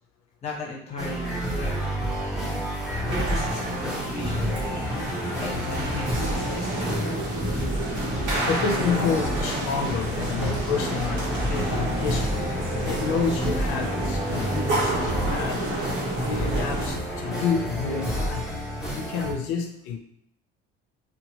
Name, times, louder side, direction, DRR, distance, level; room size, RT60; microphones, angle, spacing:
voice 1, 0.4-1.7 3.0-4.8 5.4-7.0, left 2 dB, 30° left, -5 dB, 0.9 m, -36 dB
sound 1, 1.0-19.3, equal, 5° right, 0.7 m, -30 dB
sound 2, 3.1-17.0, right 1 dB, 60° right, 1.1 m, -29 dB
voice 2, 8.4-12.5 12.9-15.9 16.3-18.5 18.9-20.0, left 6 dB, 85° left, 3 dB, 0.4 m, -29 dB
2.8 x 2.2 x 2.9 m, 0.73 s
cardioid pair, 165°, 21 cm